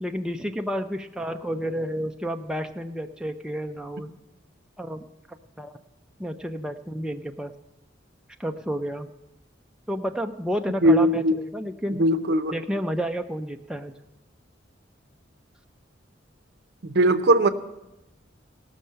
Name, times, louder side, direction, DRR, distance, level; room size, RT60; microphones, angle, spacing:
voice 1, 0.0-4.1 4.8-5.0 5.6-5.7 6.2-7.5 8.4-9.1 9.9-12.0 12.5-14.0, equal, 5° right, 4 dB, 0.3 m, -30 dB
voice 2, 10.8-11.4 11.9-12.6 16.8-17.5, right 1 dB, 55° right, 10 dB, 0.7 m, -20 dB
17.5 x 6.4 x 5.6 m, 0.95 s
head